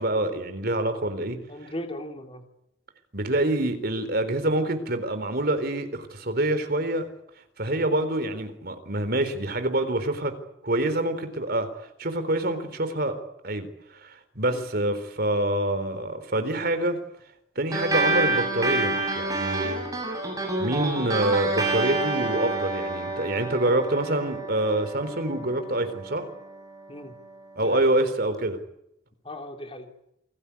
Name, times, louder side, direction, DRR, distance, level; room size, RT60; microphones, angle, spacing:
voice 1, 0.0-1.4 3.1-7.1 7.6-10.4 10.6-11.7 12.0-13.2 13.4-17.0 17.6-19.9 20.6-26.3 27.6-28.6, right 1 dB, 50° right, 10 dB, 4.0 m, -26 dB
voice 2, 1.5-2.4 7.7-7.8 14.5-14.6 26.9-27.1 27.6-27.9 29.2-29.9, left 1 dB, 30° left, 4 dB, 3.2 m, -37 dB
sound 1, 17.7-26.5, right 2 dB, 20° right, 7.7 m, -28 dB
28.0 x 19.5 x 8.5 m, 0.81 s
head